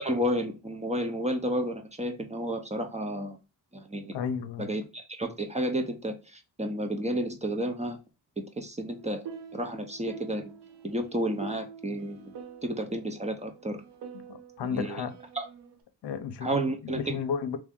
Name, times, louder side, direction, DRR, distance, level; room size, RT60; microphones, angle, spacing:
voice 1, 0.0-3.4 3.7-4.2 4.6-8.0 8.6-9.2 9.5-10.5 10.8-12.3 12.6-13.8 14.7-15.0 15.3-15.4 16.4-17.2, right 1 dB, 15° right, 0.7 m, -31 dB
voice 2, 4.1-4.7 14.1-15.1 16.0-17.6, left 7 dB, 85° left, 0.7 m, -33 dB
sound 1, 8.9-15.8, right 7 dB, 85° right, 0.7 m, -46 dB
3.1 x 2.6 x 3.6 m
cardioid pair, 90°, 40 cm